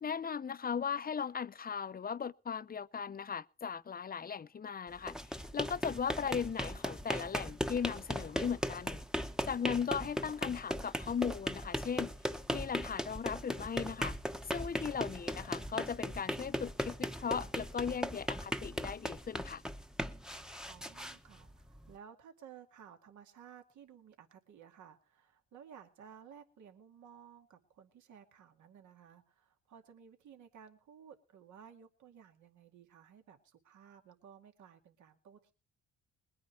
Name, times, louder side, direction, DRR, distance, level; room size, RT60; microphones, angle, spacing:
voice 1, 0.0-9.0 9.5-12.1 12.5-14.2 14.4-19.6, left 7 dB, 30° left, 0.6 m, -37 dB
sound 1, 4.9-21.9, equal, ahead, 0.9 m, -38 dB
voice 2, 20.7-35.5, right 8 dB, 75° right, 2.2 m, -56 dB
21.0 x 9.4 x 4.5 m
cardioid pair, 90°, 30 cm